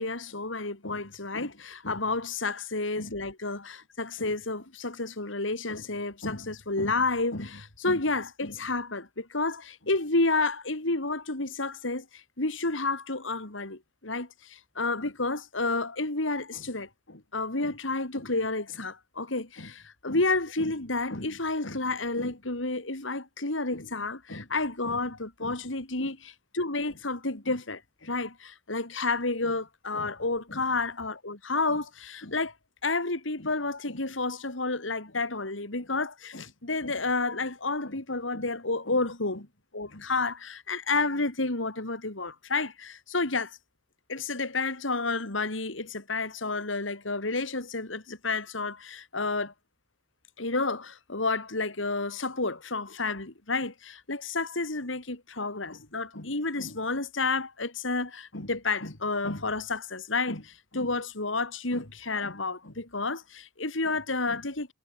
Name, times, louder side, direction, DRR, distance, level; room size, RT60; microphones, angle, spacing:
voice 1, 0.0-32.5 32.8-39.5 39.7-43.6 44.1-49.5 50.4-64.7, left 3 dB, 80° left, 3.3 m, -30 dB
head